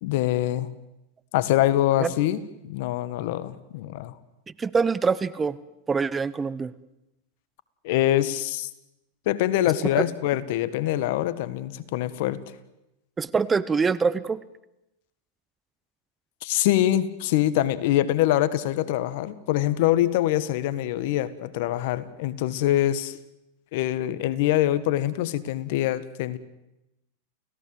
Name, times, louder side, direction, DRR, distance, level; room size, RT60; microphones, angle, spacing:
voice 1, 0.0-0.7 1.3-4.1 7.8-8.7 9.2-12.4 16.4-23.2 23.7-26.4, left 13 dB, 60° left, 15 dB, 1.6 m, -24 dB
voice 2, 4.6-5.6 5.9-6.7 13.2-14.4, right 5 dB, 15° right, 18 dB, 0.9 m, -24 dB
29.5 x 17.0 x 7.9 m, 0.91 s
hypercardioid pair, 110°, 0 cm